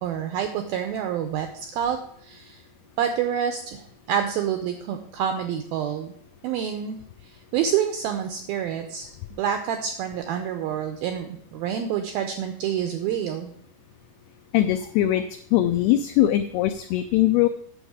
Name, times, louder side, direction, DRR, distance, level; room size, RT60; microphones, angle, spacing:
voice 1, 0.0-2.6 3.0-6.1 6.4-7.0 7.2-9.1 9.4-13.5, right 9 dB, 85° right, 6 dB, 2.1 m, -27 dB
voice 2, 14.5-15.2 15.5-17.5, left 13 dB, 85° left, 9 dB, 2.2 m, -21 dB
9.0 x 7.1 x 4.8 m, 0.65 s
omnidirectional pair, 5.0 m